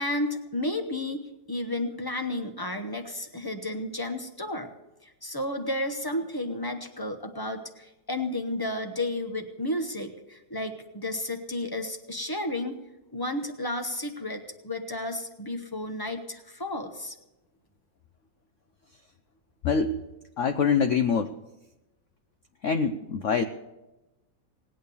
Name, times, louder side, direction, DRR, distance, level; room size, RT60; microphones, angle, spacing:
voice 1, 0.0-4.7 5.0-12.8 13.1-17.2, left 1 dB, 35° left, 6 dB, 0.3 m, -32 dB
voice 2, 19.6-20.0 20.4-21.3 22.6-23.4, left 6 dB, 85° left, 8 dB, 0.6 m, -24 dB
18.5 x 8.8 x 6.9 m, 1.0 s
omnidirectional pair, 2.1 m